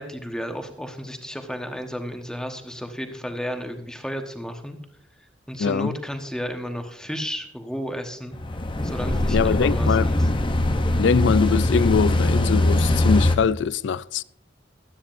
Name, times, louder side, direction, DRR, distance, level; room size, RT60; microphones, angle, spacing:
voice 1, 0.0-4.8 5.5-8.4 8.8-10.3, equal, 5° left, 1.2 m, -33 dB
voice 2, 5.6-6.0 9.3-10.1 11.0-14.2, left 6 dB, 65° left, 0.4 m, -22 dB
sound 1, 8.3-13.4, left 1 dB, 25° left, 0.8 m, -21 dB
16.5 x 12.5 x 2.6 m
head